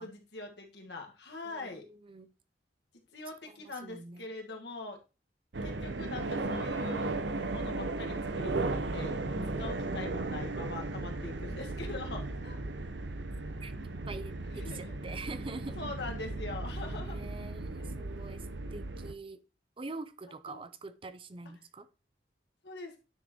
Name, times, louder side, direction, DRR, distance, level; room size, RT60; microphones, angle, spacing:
voice 1, 0.0-1.8 3.1-5.0 5.6-9.2 9.6-12.6 14.5-14.9 15.8-17.2 20.5-20.6 22.6-22.9, left 3 dB, 70° left, 1.7 m, -43 dB
voice 2, 1.4-2.3 3.4-4.3 13.6-13.7 14.1-15.8 17.0-19.4 19.8-21.9, right 3 dB, 30° right, 0.5 m, -45 dB
sound 1, 5.5-19.1, right 2 dB, 85° right, 0.8 m, -36 dB
9.9 x 6.4 x 3.0 m
head